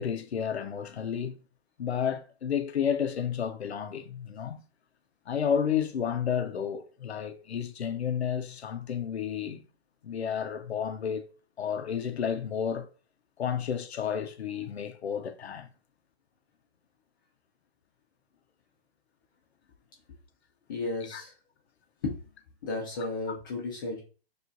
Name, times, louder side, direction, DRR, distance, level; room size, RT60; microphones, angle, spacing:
voice 1, 0.0-1.4 1.8-4.6 5.3-9.6 10.0-11.2 11.6-12.9 13.4-15.7 21.1-21.2 23.3-23.4, left 8 dB, 90° left, 0.6 m, -31 dB
voice 2, 20.7-21.3 22.0-22.2 22.6-24.0, left 3 dB, 20° left, 0.4 m, -33 dB
6.4 x 2.4 x 2.5 m
hypercardioid pair, 145°, 31 cm